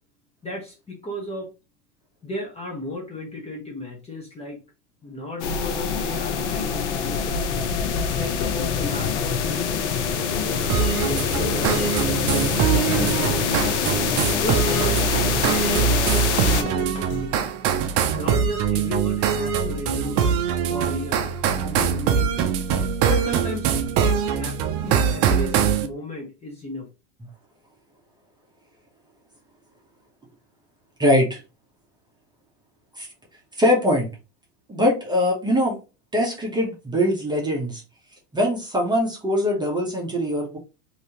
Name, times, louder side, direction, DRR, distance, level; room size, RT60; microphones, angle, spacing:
voice 1, 0.4-1.5 2.2-4.6 5.0-7.5 8.1-10.7 11.1-12.0 12.3-13.8 14.4-16.1 16.4-17.5 18.1-20.4 20.7-21.3 21.6-22.6 23.1-23.7 24.0-26.9, left 1 dB, 15° left, -1 dB, 1.0 m, -34 dB
sound 1, 5.4-16.6, left 6 dB, 70° left, 0.8 m, -25 dB
sound 2, 7.5-17.4, left 5 dB, 35° left, 0.5 m, -36 dB
sound 3, 10.7-25.9, right 7 dB, 40° right, 0.5 m, -23 dB
voice 2, 31.0-31.4 33.0-33.1 33.6-34.1 34.7-35.8 36.1-37.8 38.3-40.6, left 1 dB, 10° right, -2 dB, 1.0 m, -22 dB
3.1 x 2.9 x 2.9 m, 0.31 s
supercardioid pair, 120°, 36 cm